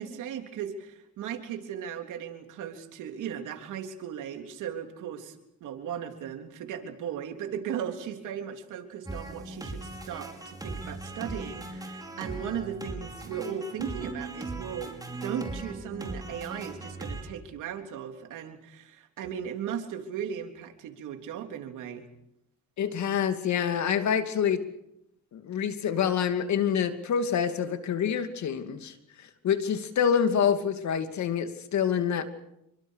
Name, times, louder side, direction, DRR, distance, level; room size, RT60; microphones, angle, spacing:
voice 1, 0.0-14.9 15.2-22.1, right 8 dB, 85° right, 5 dB, 3.6 m, -37 dB
sound 1, 9.1-17.2, right 2 dB, 10° right, 5.6 m, -39 dB
voice 2, 22.8-24.6 25.3-32.3, left 8 dB, 65° left, 8 dB, 2.7 m, -27 dB
27.5 x 24.5 x 6.6 m, 0.80 s
cardioid pair, 90°, 30 cm